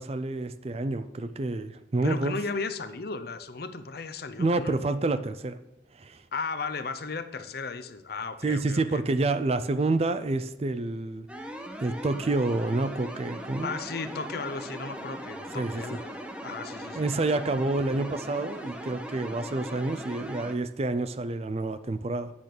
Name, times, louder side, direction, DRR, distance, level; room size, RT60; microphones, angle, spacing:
voice 1, 0.0-2.4 4.4-5.6 6.0-6.2 8.4-11.3 11.8-13.8 15.6-15.8 16.9-22.3, right 2 dB, 30° right, 12 dB, 0.4 m, -28 dB
voice 2, 2.0-4.8 6.3-9.0 13.6-16.2 16.4-17.1, left 4 dB, 50° left, 11 dB, 0.7 m, -35 dB
sound 1, 11.3-20.5, equal, 5° right, 0.8 m, -39 dB
8.6 x 6.8 x 6.0 m, 0.95 s
head